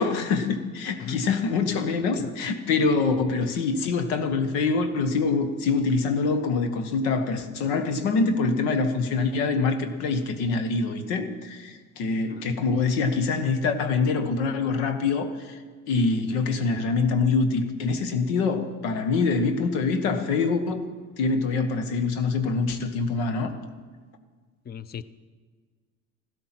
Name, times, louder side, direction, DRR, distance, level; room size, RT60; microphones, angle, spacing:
voice 1, 0.0-15.6 15.9-20.8 21.2-23.6, left 4 dB, 75° left, 9 dB, 1.5 m, -25 dB
voice 2, 24.7-25.0, left 7 dB, 25° left, 17 dB, 0.6 m, -36 dB
15.0 x 13.0 x 6.0 m, 1.5 s
hypercardioid pair, 70°, 42 cm